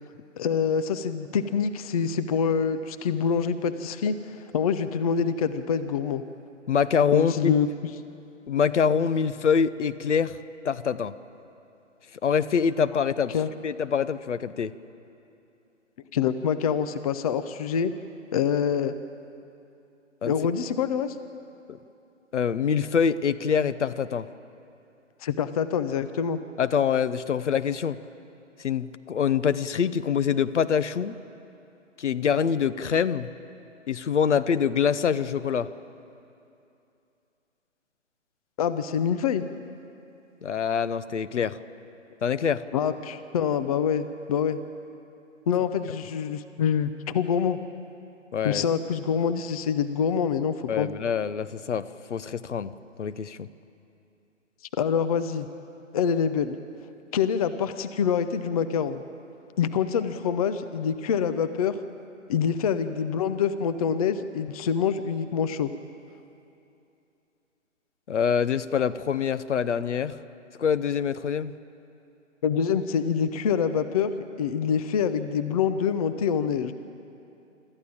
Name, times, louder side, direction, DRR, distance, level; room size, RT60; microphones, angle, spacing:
voice 1, 0.4-4.2 4.5-6.2 7.1-7.9 13.3-13.5 16.1-17.9 18.3-18.9 20.2-21.2 25.2-26.4 38.6-39.4 42.7-44.6 45.5-47.6 48.4-50.9 54.8-55.5 55.9-56.6 57.1-59.0 59.6-61.8 62.3-65.7 72.4-74.1 74.4-76.7, left 7 dB, 30° left, 11 dB, 0.7 m, -25 dB
voice 2, 6.7-7.5 8.5-10.4 10.6-11.1 12.2-13.4 13.6-14.7 20.2-20.3 22.3-24.3 26.6-28.0 28.6-31.2 32.0-33.3 33.9-35.7 40.4-41.6 42.2-42.6 48.3-48.6 50.7-52.7 53.0-53.5 68.1-70.2 70.6-71.5, left 7 dB, 65° left, 14 dB, 0.9 m, -25 dB
26.0 x 14.0 x 8.8 m, 2.7 s
figure-of-eight pair, 140°, 38 cm